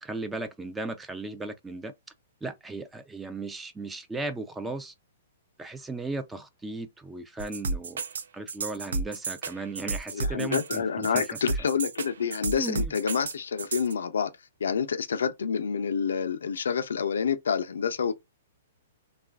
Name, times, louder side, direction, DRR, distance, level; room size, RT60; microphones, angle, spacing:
voice 1, 0.0-1.9 2.4-4.9 5.6-8.0 8.3-11.2 12.6-12.9, right 3 dB, 10° right, 0.4 m, -36 dB
sound 1, 7.4-13.9, right 3 dB, 85° right, 0.4 m, -31 dB
voice 2, 10.1-14.3 14.6-18.2, left 6 dB, 85° left, 0.5 m, -28 dB
3.0 x 2.3 x 2.3 m
hypercardioid pair, 140°, 0 cm